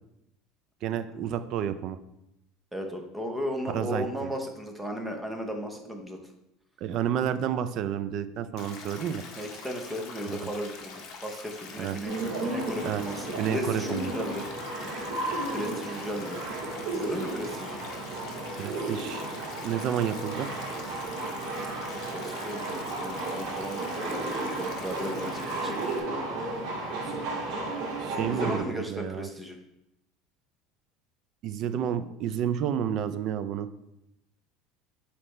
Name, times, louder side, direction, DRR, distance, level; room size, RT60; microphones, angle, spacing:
voice 1, 0.8-2.0 3.7-4.3 6.8-9.2 10.3-10.5 11.8-12.0 12.8-13.0 13.4-14.1 18.6-19.2 19.6-20.5 28.0-29.3 31.4-33.7, right 9 dB, 50° right, 12 dB, 0.4 m, -30 dB
voice 2, 2.7-6.2 9.4-12.1 12.4-14.5 15.5-16.4 16.9-17.8 21.3-25.7 27.0-27.2 28.2-29.6, equal, 5° right, 3 dB, 0.8 m, -36 dB
Stream, 8.6-26.0, left 5 dB, 50° left, 1.0 m, -44 dB
sound 1, 12.0-28.6, right 2 dB, 70° right, 2.4 m, -33 dB
7.4 x 4.2 x 3.2 m, 0.86 s
cardioid pair, 145°, 0 cm